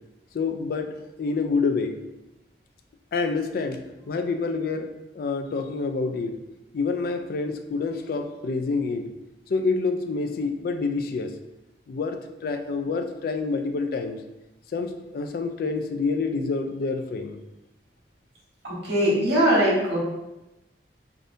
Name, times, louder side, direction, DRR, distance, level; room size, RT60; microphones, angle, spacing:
voice 1, 0.3-2.0 3.1-6.4 6.7-9.1 9.5-11.3 11.9-14.2 14.7-17.4, left 4 dB, 55° left, 7 dB, 0.3 m, -27 dB
voice 2, 18.6-20.0, equal, 90° right, -7 dB, 1.5 m, -21 dB
3.4 x 2.6 x 2.6 m, 0.97 s
head